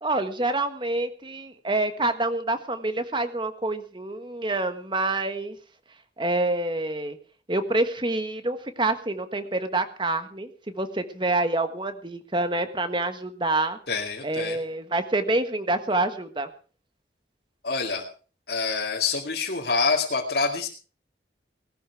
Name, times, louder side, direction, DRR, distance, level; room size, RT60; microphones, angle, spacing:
voice 1, 0.0-5.6 6.2-7.2 7.5-13.8 14.2-16.5, right 2 dB, 25° right, 10 dB, 1.3 m, -27 dB
voice 2, 13.9-14.6 17.6-18.1 18.5-20.7, left 4 dB, 60° left, -2 dB, 2.2 m, -26 dB
19.0 x 13.0 x 4.7 m, 0.39 s
head